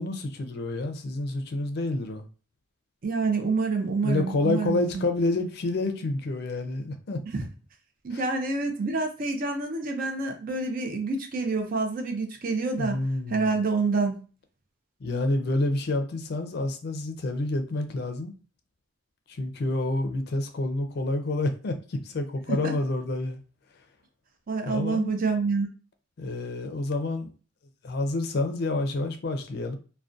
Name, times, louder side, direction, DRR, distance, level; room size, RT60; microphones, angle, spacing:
voice 1, 0.0-2.3 4.0-7.2 8.1-8.3 12.8-13.5 15.0-18.3 19.3-23.4 24.7-25.1 26.2-27.3 27.8-29.8, left 2 dB, 55° left, 0.4 m, -28 dB
voice 2, 3.0-5.1 7.3-7.4 8.0-13.0 13.3-14.2 22.5-22.7 24.5-25.7, right 4 dB, 45° right, 0.4 m, -27 dB
2.4 x 2.1 x 2.5 m
head